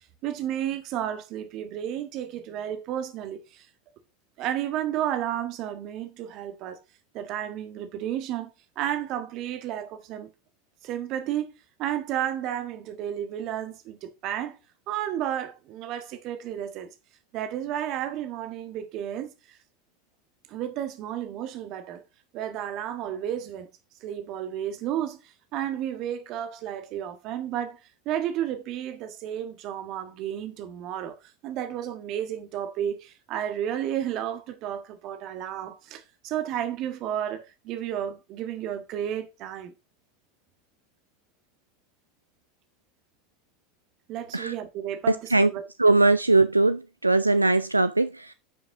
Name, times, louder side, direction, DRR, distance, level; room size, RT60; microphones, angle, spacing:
voice 1, 0.2-3.7 4.4-6.8 7.1-10.3 10.8-11.5 11.8-14.6 14.9-16.9 17.3-19.6 20.5-22.0 22.3-23.7 24.0-25.2 25.5-27.8 28.0-31.2 31.4-39.7 44.1-46.0, right 10 dB, 45° right, 1.5 m, -32 dB
voice 2, 45.1-45.5 45.8-48.3, right 2 dB, 90° right, 0.4 m, -21 dB
9.8 x 5.8 x 3.7 m
figure-of-eight pair, 85°, 0 cm